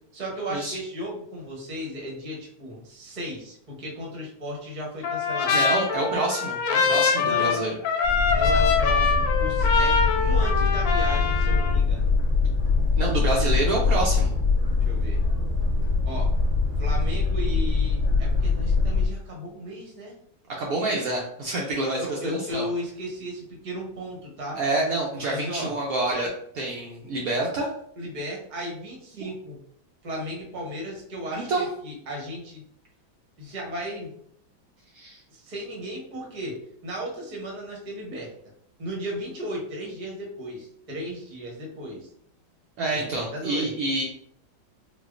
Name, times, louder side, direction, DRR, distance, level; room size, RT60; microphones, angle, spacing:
voice 1, 0.1-5.6 7.2-7.6 8.3-12.1 14.8-15.2 16.1-16.3 16.8-20.2 22.0-24.6 25.1-25.7 28.0-29.6 30.0-32.6 33.4-34.1 35.3-38.3 38.8-42.1 42.9-43.7, equal, 40° right, -2 dB, 0.6 m, -35 dB
Trumpet, 5.0-11.8, left 5 dB, 75° left, 1.2 m, -24 dB
voice 2, 5.5-7.8 13.0-14.3 20.6-22.7 24.6-26.3 26.5-27.7 31.3-31.7 34.9-35.2 42.8-44.0, right 2 dB, 90° right, -2 dB, 0.7 m, -27 dB
Boat Water vehicle, 8.0-19.1, left 4 dB, 50° left, 0.8 m, -23 dB
4.1 x 2.3 x 2.4 m, 0.66 s
omnidirectional pair, 2.1 m